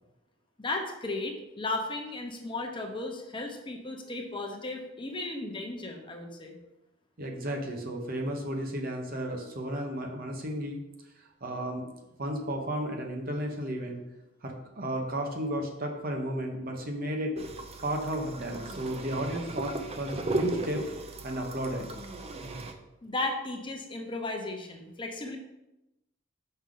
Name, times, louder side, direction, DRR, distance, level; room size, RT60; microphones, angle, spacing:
voice 1, 0.6-6.5 23.0-25.4, left 2 dB, 25° left, 3 dB, 0.8 m, -35 dB
voice 2, 7.2-10.8 11.4-11.9 12.2-14.0 14.4-17.3 17.8-20.8 21.2-21.9, right 1 dB, 50° right, 2 dB, 0.9 m, -33 dB
sound 1, 17.4-22.7, right 2 dB, 30° right, 0.6 m, -36 dB
6.2 x 5.5 x 3.8 m, 0.93 s
head